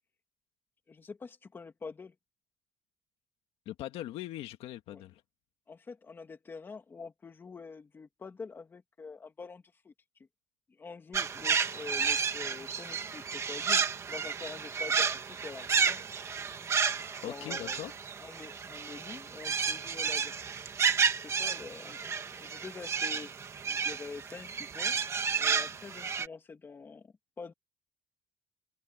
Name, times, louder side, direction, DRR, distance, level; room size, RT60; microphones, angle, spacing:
voice 1, 0.9-2.1 4.9-5.0 5.7-9.9 10.7-16.0 17.2-17.8 18.2-20.3 21.2-23.3 23.7-25.0 25.3-27.5, left 4 dB, 20° left, 2.2 m, -46 dB
voice 2, 3.6-5.2 17.2-17.9, left 14 dB, 80° left, 1.6 m, -40 dB
sound 1, 11.1-26.3, right 6 dB, 30° right, 1.6 m, -31 dB
cardioid pair, 165°, 10 cm